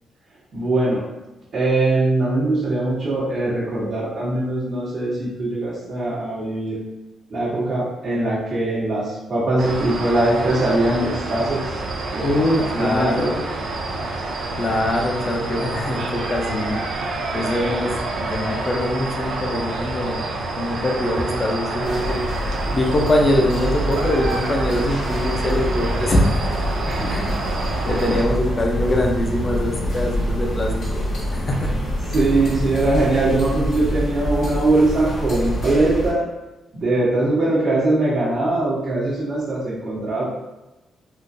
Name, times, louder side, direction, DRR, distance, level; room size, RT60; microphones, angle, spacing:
voice 1, 0.5-1.1 1.5-6.8 7.3-11.8 12.1-13.4 26.8-27.2 28.1-28.2 32.1-36.3 36.7-40.3, right 2 dB, 50° right, -10 dB, 1.1 m, -21 dB
sound 1, 9.6-28.2, right 2 dB, 80° right, 0.5 m, -28 dB
voice 2, 12.2-13.3 14.6-16.8 17.3-20.2 20.6-22.3 22.7-26.5 27.1-27.3 27.8-31.0 31.3-31.7, left 1 dB, 30° left, 0 dB, 0.6 m, -23 dB
sound 2, 21.8-36.1, equal, 60° left, 1.2 m, -26 dB
3.7 x 2.5 x 2.6 m, 1.0 s
cardioid pair, 110°, 0 cm